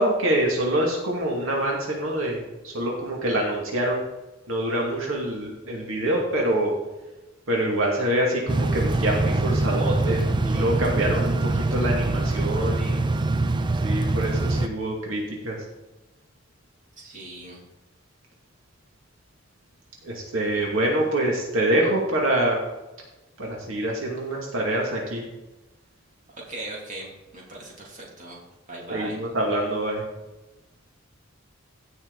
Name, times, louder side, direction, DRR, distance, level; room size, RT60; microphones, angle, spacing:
voice 1, 0.0-4.0 4.5-6.7 7.5-13.0 13.8-15.5 20.0-22.6 23.4-25.2 28.9-30.0, right 1 dB, 75° right, -2 dB, 2.4 m, -25 dB
sound 1, 8.5-14.7, right 2 dB, 25° right, 0.5 m, -24 dB
voice 2, 17.0-17.6 26.5-28.4 28.7-29.2, right 2 dB, 40° right, -3 dB, 2.9 m, -39 dB
16.0 x 6.1 x 4.1 m, 1.0 s
head